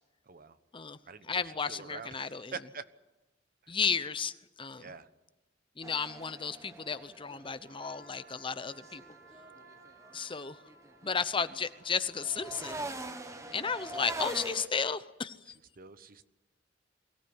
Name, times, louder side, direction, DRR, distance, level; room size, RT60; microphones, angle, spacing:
voice 1, 0.3-0.6 1.1-1.3 1.7-2.9 3.6-3.7 4.8-5.1 13.3-13.5 15.8-16.2, right 5 dB, 50° right, 12 dB, 1.1 m, -45 dB
voice 2, 1.3-2.5 3.7-4.9 5.8-9.0 10.1-10.6 11.0-12.8 13.5-15.5, left 5 dB, 30° left, 13 dB, 0.8 m, -34 dB
sound 1, 5.8-10.3 10.7-14.7, right 2 dB, 15° right, 1.4 m, -43 dB
Trumpet, 7.6-14.1, right 3 dB, 80° right, 4.1 m, -58 dB
23.0 x 17.5 x 9.7 m, 1.0 s
head